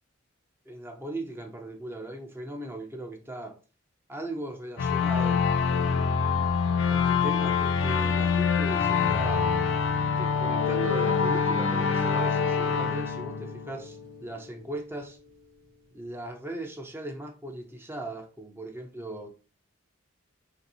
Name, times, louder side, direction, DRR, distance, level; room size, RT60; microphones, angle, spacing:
voice 1, 0.7-3.6 4.1-5.5 5.7-6.2 6.9-9.5 10.1-15.2 15.9-19.3, right 1 dB, 10° right, 0.4 m, -38 dB
sound 1, 4.8-14.1, left 5 dB, 65° left, 0.4 m, -25 dB
Mallet percussion, 10.6-15.0, left 7 dB, 70° right, 0.6 m, -34 dB
3.3 x 2.5 x 2.7 m
head